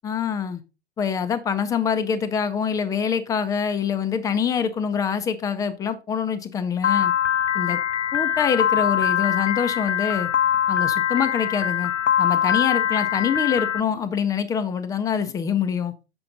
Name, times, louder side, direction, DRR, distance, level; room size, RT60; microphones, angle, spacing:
voice 1, 0.0-0.6 1.0-7.1 7.5-7.8 8.1-10.3 10.7-11.9 12.2-15.9, left 7 dB, 10° left, 0.5 m, -25 dB
Piano, 6.8-13.8, left 9 dB, 85° left, 0.5 m, -23 dB
7.6 x 6.2 x 3.8 m
figure-of-eight pair, 110°, 35 cm